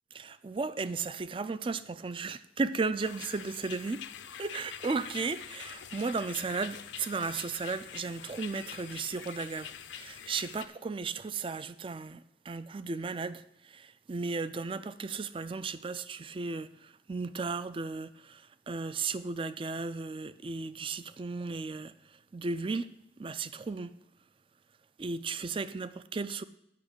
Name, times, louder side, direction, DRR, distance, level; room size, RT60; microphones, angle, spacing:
voice 1, 0.1-4.1 4.4-22.9 23.2-24.0 25.0-26.4, right 4 dB, 30° right, 0.4 m, -35 dB
sound 1, 3.0-10.7, left 9 dB, 80° left, 0.7 m, -45 dB
8.5 x 5.9 x 7.9 m
head